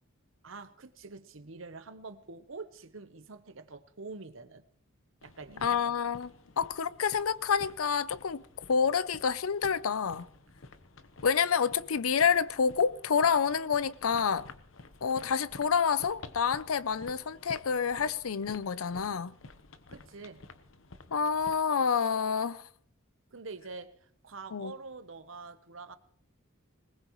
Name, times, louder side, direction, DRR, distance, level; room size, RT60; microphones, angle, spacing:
voice 1, 0.4-4.6 5.2-5.9 19.9-20.4 23.3-26.0, right 4 dB, 65° right, 1.0 m, -46 dB
sound 1, 5.2-21.6, left 3 dB, 65° left, 1.0 m, -52 dB
voice 2, 5.6-6.3 6.6-8.4 8.7-10.3 11.2-14.5 15.0-19.4 21.1-22.6 24.5-24.7, left 6 dB, 85° left, 0.6 m, -28 dB
21.0 x 19.0 x 3.1 m
head